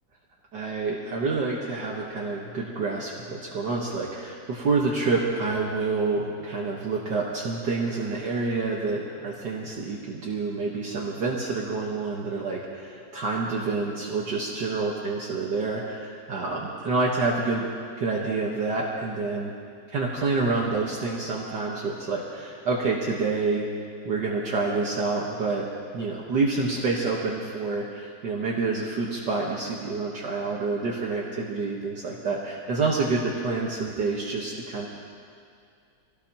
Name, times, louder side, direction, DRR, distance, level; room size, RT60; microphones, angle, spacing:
voice 1, 0.5-17.7 18.0-19.5 19.9-23.7 24.0-25.7 25.9-34.9, right 3 dB, 60° right, -3 dB, 1.8 m, -28 dB
24.5 x 17.5 x 2.9 m, 2.3 s
omnidirectional pair, 2.2 m